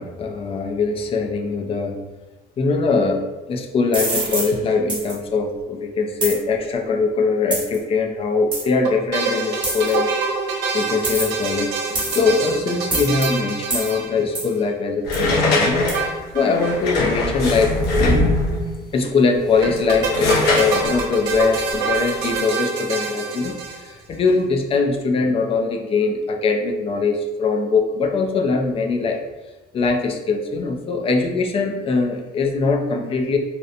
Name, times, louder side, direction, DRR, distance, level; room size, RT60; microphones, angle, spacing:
voice 1, 0.0-2.0 2.6-10.1 10.7-15.9 16.3-18.3 18.9-29.2 29.7-33.4, left 4 dB, 35° left, 3 dB, 0.4 m, -22 dB
sound 1, 3.9-4.5 4.9-5.1 6.2-6.4 7.5-7.8 8.5-8.6 9.6-9.9 11.0-11.4 12.0-12.4 12.9-13.3 13.7-13.9 14.4-14.5 15.1-15.3 15.9-16.0, right 2 dB, 25° right, 1.1 m, -25 dB
sound 2, 8.8-14.6 15.9-16.8 17.0-17.1 17.3-17.4 19.6-24.1, right 4 dB, 80° right, 0.6 m, -26 dB
sound 3, 15.0-18.7 19.4-22.4, left 2 dB, 75° left, 0.7 m, -22 dB
2.8 x 2.0 x 2.5 m, 1.1 s
cardioid pair, 110°, 17 cm